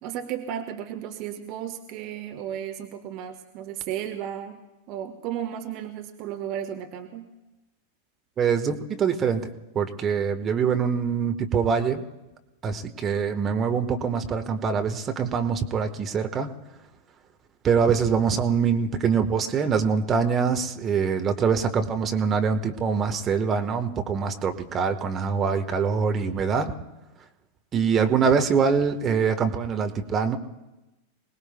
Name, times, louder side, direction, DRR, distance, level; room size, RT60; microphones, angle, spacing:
voice 1, 0.0-4.6 4.9-7.3, right 10 dB, 40° right, 7 dB, 1.0 m, -34 dB
voice 2, 8.4-12.0 12.6-16.5 17.6-26.7 27.7-30.4, right 6 dB, 25° right, 5 dB, 1.2 m, -24 dB
25.5 x 19.0 x 2.2 m, 1.0 s
figure-of-eight pair, 90°, 0 cm